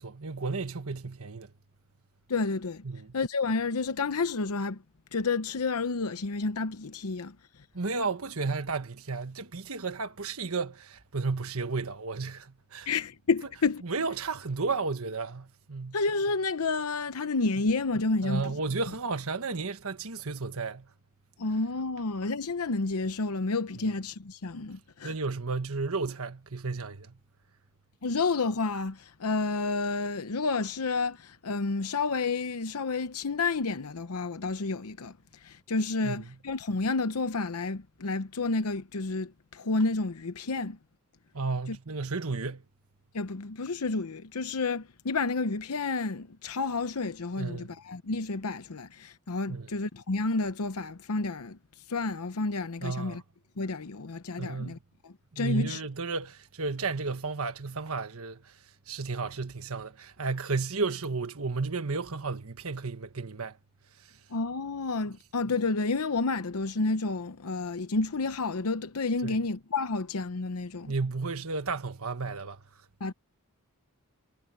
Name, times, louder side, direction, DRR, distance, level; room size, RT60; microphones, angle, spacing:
voice 1, 0.0-1.5 2.8-3.1 7.7-12.9 13.8-16.0 18.2-20.9 25.0-27.1 36.0-36.2 41.3-42.6 47.4-47.7 49.5-49.7 52.8-53.2 54.4-54.8 55.3-58.5 58.9-63.6 69.2-69.4 70.9-72.6, right 4 dB, 70° right, 1.4 m, -33 dB
voice 2, 2.3-2.8 3.1-4.8 5.1-7.4 12.9-13.8 15.9-18.5 21.4-25.1 28.0-35.1 35.4-40.8 41.7-41.8 43.1-51.6 51.9-53.2 53.6-54.8 55.0-55.8 64.3-70.9 73.0-73.1, left 3 dB, 85° left, 0.8 m, -30 dB
head